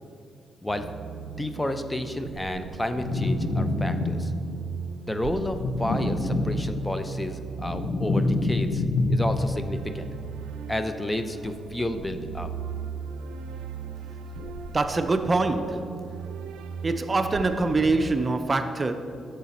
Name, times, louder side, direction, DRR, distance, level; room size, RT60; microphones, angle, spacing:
sound 1, 0.7-18.4, right 6 dB, 85° right, 0.5 m, -37 dB
voice 1, 1.4-4.3 5.1-8.8 9.1-10.1 10.7-12.5 14.4-14.5, left 1 dB, 15° left, 8 dB, 0.6 m, -31 dB
sound 2, 2.9-4.5 5.5-7.0 7.4-9.7, left 2 dB, 70° left, 0.9 m, -26 dB
voice 2, 14.7-15.9 16.8-18.9, right 3 dB, 35° right, 8 dB, 0.6 m, -24 dB
9.7 x 6.8 x 4.2 m, 2.5 s
supercardioid pair, 55°, 0 cm